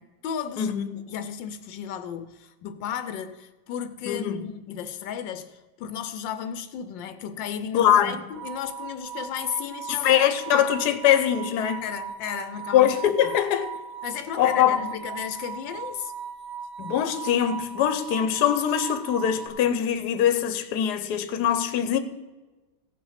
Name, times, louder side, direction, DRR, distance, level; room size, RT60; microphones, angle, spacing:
voice 1, 0.0-10.7 11.8-12.9 13.2-13.4 14.0-16.1, left 8 dB, 85° left, 1.4 m, -34 dB
voice 2, 0.6-0.9 4.1-4.5 7.7-8.2 9.9-11.8 12.7-13.7 14.4-14.8 16.8-22.0, left 10 dB, 65° left, 1.3 m, -22 dB
sound 1, 8.3-19.5, right 6 dB, 40° right, 1.4 m, -38 dB
16.5 x 5.9 x 5.7 m
omnidirectional pair, 2.0 m